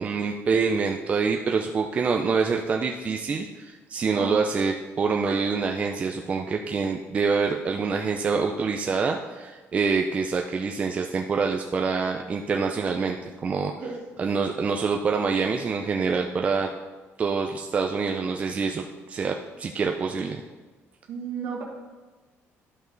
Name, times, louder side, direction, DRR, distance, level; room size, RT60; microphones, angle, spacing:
voice 1, 0.0-13.7 14.2-16.7 17.2-20.4, right 5 dB, 25° right, 2 dB, 0.4 m, -26 dB
voice 2, 21.1-21.6, right 5 dB, 65° right, -2 dB, 1.4 m, -33 dB
11.5 x 5.3 x 3.9 m, 1.3 s
cardioid pair, 165°, 5 cm